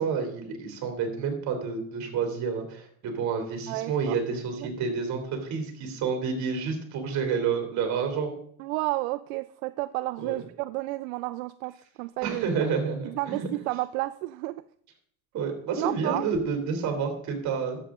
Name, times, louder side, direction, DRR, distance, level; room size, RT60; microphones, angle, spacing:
voice 1, 0.0-8.3 10.2-10.4 12.2-13.5 15.3-17.8, right 5 dB, 40° right, 3 dB, 3.1 m, -29 dB
voice 2, 3.7-4.2 4.6-4.7 8.6-12.7 13.0-14.6 15.8-16.3, right 19 dB, 70° right, 13 dB, 0.5 m, -31 dB
12.5 x 7.4 x 3.7 m, 0.62 s
supercardioid pair, 135°, 42 cm